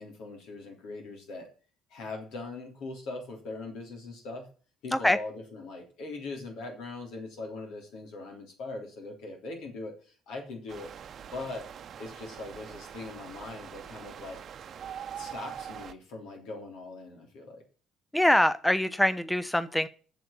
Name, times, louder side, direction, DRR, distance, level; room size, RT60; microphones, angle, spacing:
voice 1, 0.0-1.5 1.9-4.5 4.8-10.9 11.3-11.7 12.0-14.4 15.2-17.6, left 3 dB, 70° left, 2 dB, 3.6 m, -41 dB
sound 1, 10.7-15.9, right 8 dB, 50° right, 0.9 m, -43 dB
voice 2, 18.1-19.9, left 1 dB, 10° left, 14 dB, 0.7 m, -24 dB
7.8 x 7.2 x 8.5 m, 0.40 s
hypercardioid pair, 50°, 0 cm